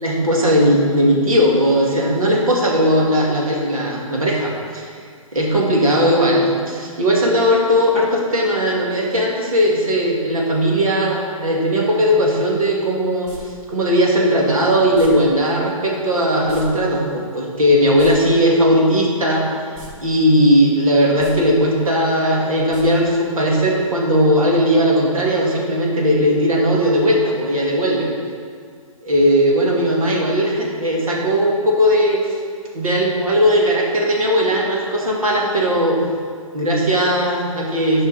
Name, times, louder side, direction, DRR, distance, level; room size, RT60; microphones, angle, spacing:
voice 1, 0.0-4.9 5.3-13.3 13.7-19.5 20.0-28.1 29.0-32.4 32.7-36.0 36.5-38.1, equal, 75° right, -2 dB, 2.0 m, -17 dB
sound 1, 13.2-13.4 14.9-15.1 16.5-16.6 16.9-17.0 17.8-18.1 19.7-19.9 20.3-20.4 21.1-21.3 22.7-22.8 23.1-23.2, equal, 35° right, 2.2 m, -37 dB
10.5 x 5.5 x 4.0 m, 2.1 s
figure-of-eight pair, 125°, 18 cm